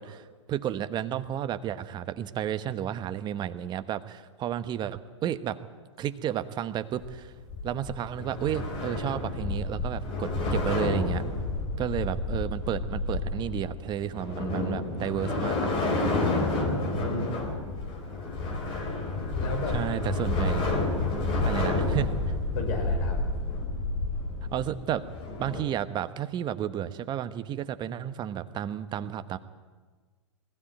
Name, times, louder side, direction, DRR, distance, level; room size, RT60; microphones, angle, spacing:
voice 1, 0.0-5.6 6.0-7.3 7.6-11.2 11.8-15.6 19.7-20.8 21.4-22.1 24.4-25.0 25.4-29.4, right 10 dB, 25° right, 12 dB, 1.1 m, -32 dB
sound 1, 6.9-25.6, left 2 dB, 30° left, 4.6 m, -30 dB
voice 2, 16.6-17.4 19.3-19.8 21.5-22.0 22.5-23.4, left 2 dB, 50° left, 3 dB, 5.5 m, -34 dB
21.0 x 16.0 x 9.3 m, 1.4 s
hypercardioid pair, 115°, 16 cm